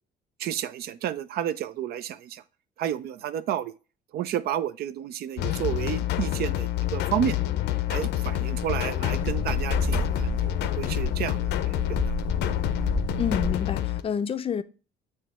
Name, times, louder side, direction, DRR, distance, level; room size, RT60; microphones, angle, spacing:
voice 1, 0.4-2.4 2.8-3.7 4.1-7.4 7.9-12.0, right 10 dB, 65° right, 0.5 m, -31 dB
sound 1, 5.4-14.0, left 14 dB, 80° left, 0.6 m, -27 dB
sound 2, 8.3-13.5, right 2 dB, 20° right, 1.6 m, -32 dB
voice 2, 13.2-14.6, left 7 dB, 35° left, 0.5 m, -28 dB
7.1 x 3.3 x 4.2 m
cardioid pair, 110°, 17 cm